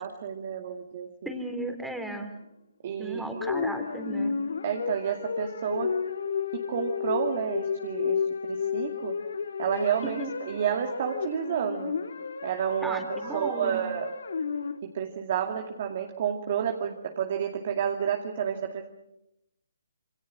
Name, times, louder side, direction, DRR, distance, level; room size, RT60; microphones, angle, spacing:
voice 1, 0.0-1.3 2.8-3.4 4.6-5.9 6.5-8.2 8.5-9.2 9.6-11.9 12.4-14.1 14.8-18.9, right 8 dB, 45° right, 4 dB, 2.3 m, -30 dB
voice 2, 1.3-2.3 3.0-4.4 10.0-10.3 12.8-13.8, right 1 dB, ahead, 5 dB, 3.4 m, -35 dB
sound 1, 3.4-14.8, left 6 dB, 70° left, 1.8 m, -32 dB
28.0 x 24.5 x 6.2 m, 0.88 s
hypercardioid pair, 145°, 0 cm